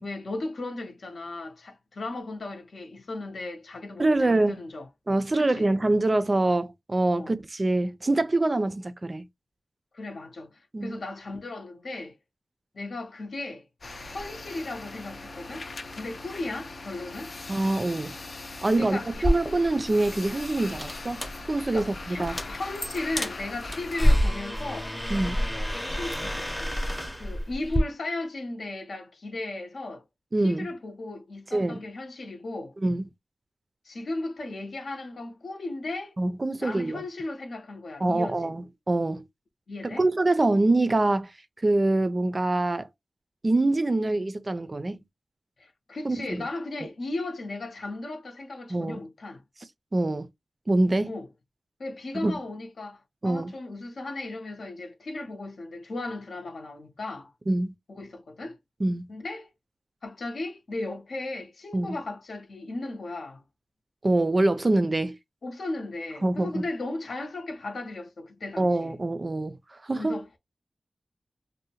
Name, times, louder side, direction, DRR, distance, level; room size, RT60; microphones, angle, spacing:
voice 1, 0.0-4.9 5.5-5.7 7.1-7.3 9.9-12.2 12.7-13.6 14.1-17.3 18.8-19.4 21.7-24.9 25.7-30.0 30.4-32.7 33.8-36.1 36.6-38.5 39.7-40.0 45.6-49.4 51.1-51.3 51.8-57.3 57.9-58.6 59.1-59.5 60.0-63.4 65.4-69.0 69.9-70.3, left 2 dB, 75° left, 0.7 m, -36 dB
voice 2, 4.0-4.6 5.1-9.3 10.7-11.0 17.5-18.1 18.6-21.2 21.5-22.4 25.1-25.4 30.3-30.7 31.5-31.8 32.8-33.1 36.2-37.0 38.0-39.2 39.9-41.3 41.6-42.9 43.4-45.0 46.0-46.5 48.7-49.0 49.9-50.3 50.7-51.2 52.1-52.3 53.2-53.5 57.5-57.7 58.8-59.1 61.7-62.0 64.0-65.2 66.2-66.6 68.6-70.4, right 2 dB, 35° right, 0.3 m, -25 dB
sound 1, 13.8-24.2, left 2 dB, 50° left, 0.4 m, -40 dB
sound 2, 19.1-27.8, equal, 10° left, 0.6 m, -28 dB
2.7 x 2.0 x 2.8 m
wide cardioid pair, 100°, 0 cm